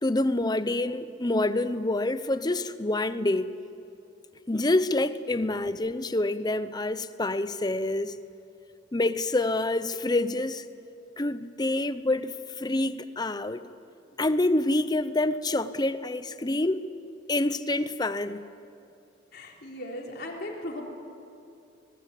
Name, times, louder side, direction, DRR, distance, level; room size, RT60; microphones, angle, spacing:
voice 1, 0.0-3.5 4.5-8.2 8.9-10.7 11.2-13.7 14.2-16.8 17.3-18.4, left 2 dB, 20° left, 0.7 m, -27 dB
voice 2, 19.3-20.8, left 1 dB, 55° left, 4.0 m, -37 dB
26.5 x 20.0 x 8.4 m
head